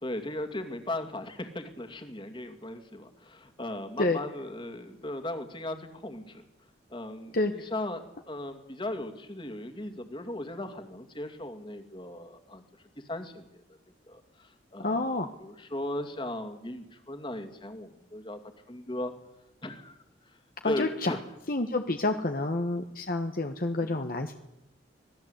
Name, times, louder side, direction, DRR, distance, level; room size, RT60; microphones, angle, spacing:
voice 1, 0.0-6.4 6.9-12.6 13.1-13.8 14.1-18.4 18.7-19.1 19.6-20.0 20.2-20.4 20.6-21.3 22.7-22.8 23.8-24.0, left 1 dB, 30° left, 7 dB, 2.5 m, -37 dB
voice 2, 14.8-15.3 20.6-21.1 21.5-24.3, left 2 dB, 50° left, 6 dB, 1.3 m, -28 dB
25.5 x 18.5 x 8.2 m, 0.88 s
head